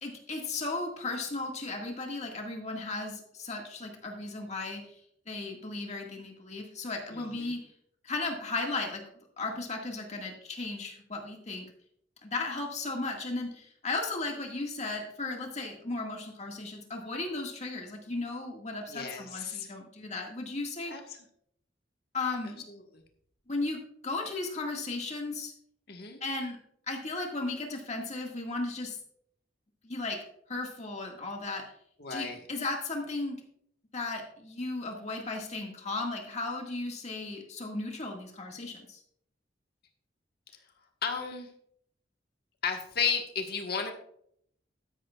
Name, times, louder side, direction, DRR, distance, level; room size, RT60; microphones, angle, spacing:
voice 1, 0.0-4.8 5.3-7.6 8.0-9.0 9.4-11.7 12.2-21.0 22.1-22.6 23.5-25.5 26.2-26.6 26.9-29.0 29.8-30.2 30.5-31.6 32.1-33.4 33.9-39.0, left 3 dB, 40° left, 1 dB, 1.8 m, -35 dB
voice 2, 7.1-7.5 18.9-19.7 20.9-21.0 22.4-23.0 25.9-26.2 32.0-32.4 41.0-41.5 42.6-43.9, left 6 dB, 55° left, 3 dB, 1.4 m, -34 dB
13.0 x 11.0 x 2.4 m, 0.68 s
head